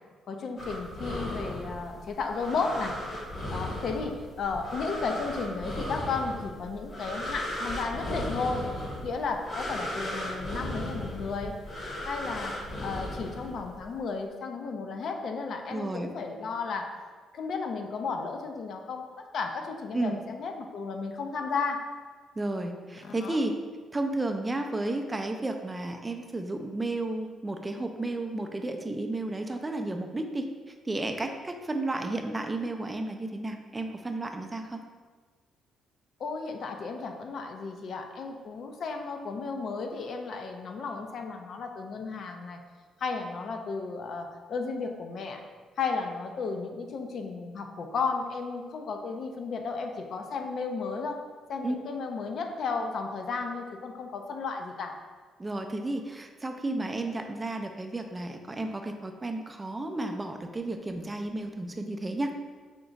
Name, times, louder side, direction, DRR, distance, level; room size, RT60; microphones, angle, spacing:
voice 1, 0.3-3.0 3.5-8.7 9.0-11.6 12.0-17.0 17.3-21.8 23.0-23.4 36.2-42.6 43.0-45.4 45.8-51.2 51.5-55.0, left 4 dB, 60° left, 4 dB, 0.5 m, -34 dB
sound 1, 0.6-13.9, left 1 dB, 45° left, 1.0 m, -36 dB
voice 2, 15.7-16.1 19.9-20.2 22.4-23.6 23.9-34.8 51.6-51.8 55.4-62.3, right 2 dB, 20° right, 5 dB, 0.4 m, -32 dB
5.1 x 2.3 x 3.9 m, 1.5 s
cardioid pair, 90°, 0 cm